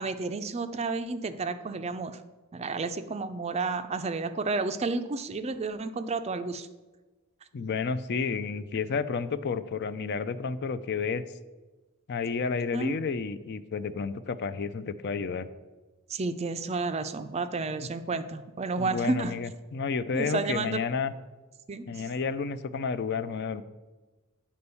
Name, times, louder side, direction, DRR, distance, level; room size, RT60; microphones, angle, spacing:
voice 1, 0.0-2.2 2.5-6.7 12.7-12.9 16.1-19.3 20.1-20.8 21.7-22.1, right 3 dB, 30° right, 10 dB, 0.4 m, -31 dB
voice 2, 7.5-11.2 12.1-15.5 18.8-21.1 21.9-23.6, left 5 dB, 50° left, 13 dB, 0.4 m, -31 dB
8.5 x 4.3 x 6.8 m, 1.2 s
head